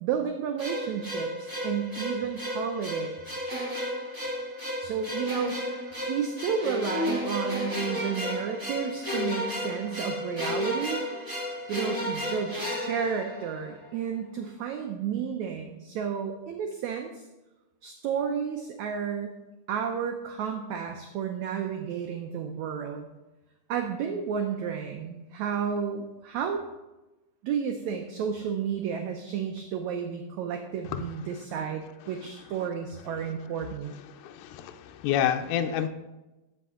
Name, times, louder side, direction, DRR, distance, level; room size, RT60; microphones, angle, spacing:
voice 1, 0.0-3.4 4.8-11.0 11.7-17.2 17.8-19.4 19.7-23.1 23.7-26.6 27.4-33.9, right 7 dB, 80° right, 4 dB, 1.7 m, -32 dB
sound 1, 0.6-13.8, left 1 dB, 15° right, 0.8 m, -33 dB
voice 2, 34.1-35.9, left 10 dB, 80° left, 6 dB, 1.8 m, -29 dB
13.5 x 5.2 x 3.7 m, 1.0 s
omnidirectional pair, 3.9 m